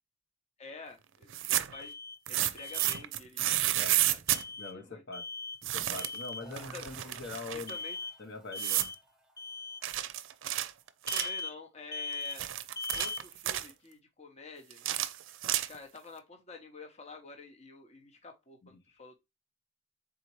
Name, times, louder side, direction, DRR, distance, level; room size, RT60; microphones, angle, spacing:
voice 1, 0.6-1.9 2.3-4.2 4.5-5.0 6.7-6.9 7.7-8.0 11.1-12.5 12.9-14.9 15.7-19.2, left 3 dB, 35° left, 0.8 m, -49 dB
sound 1, 1.2-1.8 2.3-4.4 5.6-6.2 6.5-7.7 8.6-9.0 9.8-11.4 12.1-13.7 14.7-16.0, right 13 dB, 75° right, 0.4 m, -31 dB
Alarm, 1.7-2.2 2.6-3.0 4.3-4.7 5.1-5.6 6.0-6.5 7.7-8.2 8.5-9.0 9.4-9.8 11.1-11.6 11.9-12.4 12.8-13.2, left 4 dB, 20° left, 0.3 m, -39 dB
voice 2, 4.6-5.2 5.7-7.7 8.2-8.9 18.7-18.8, left 3 dB, 60° left, 0.9 m, -43 dB
sound 2, 6.4-12.0, right 1 dB, 5° right, 0.8 m, -55 dB
4.1 x 3.7 x 3.0 m
head